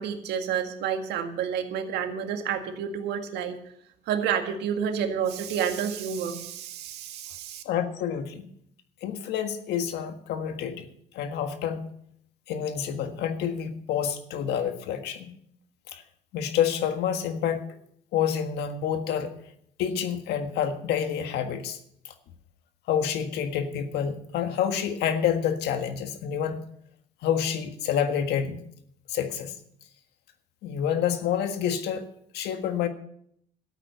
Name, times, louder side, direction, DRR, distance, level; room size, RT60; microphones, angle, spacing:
voice 1, 0.0-3.6 4.1-7.6, right 8 dB, 80° right, 5 dB, 1.9 m, -29 dB
voice 2, 7.6-8.4 9.0-10.9 11.1-11.9 12.5-15.3 15.9-16.0 16.3-17.6 18.1-19.3 19.8-21.8 22.0-22.1 22.9-26.6 27.2-28.6 29.1-29.6 30.6-32.0 32.3-32.9, left 8 dB, 80° left, 7 dB, 1.6 m, -28 dB
13.0 x 8.8 x 6.7 m, 0.70 s
cardioid pair, 110°, 17 cm